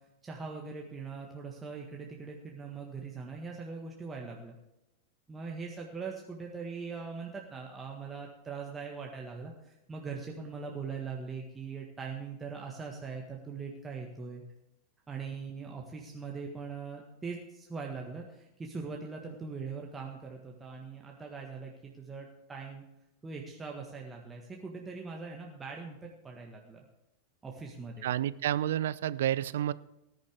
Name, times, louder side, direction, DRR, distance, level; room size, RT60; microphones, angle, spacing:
voice 1, 0.2-4.5 5.3-14.4 15.1-22.8 23.2-26.8 27.4-28.1, right 5 dB, 15° right, 0 dB, 1.6 m, -41 dB
voice 2, 28.0-29.7, right 11 dB, 60° right, 19 dB, 0.4 m, -30 dB
19.0 x 10.5 x 3.6 m, 0.87 s
figure-of-eight pair, 90°, 0 cm